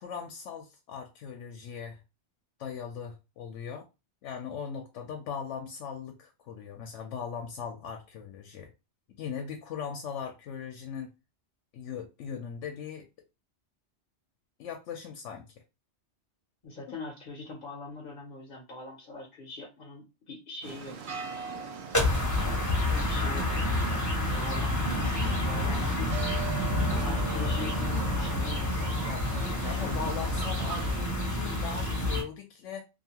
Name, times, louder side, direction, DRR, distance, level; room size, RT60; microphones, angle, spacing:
voice 1, 0.0-2.0 2.6-3.9 4.2-8.7 9.2-11.2 11.7-13.1 14.6-15.5 16.9-17.0 29.0-32.8, left 7 dB, 85° left, 0.9 m, -39 dB
voice 2, 16.6-21.0 22.1-22.4 22.9-25.0 25.4-26.2 27.0-29.1 29.6-30.0, left 3 dB, 50° left, 0.8 m, -43 dB
sound 1, 20.6-31.0, right 6 dB, 70° right, 0.8 m, -41 dB
sound 2, 21.9-32.2, left 1 dB, 20° left, 0.7 m, -28 dB
2.6 x 2.3 x 2.8 m
omnidirectional pair, 1.2 m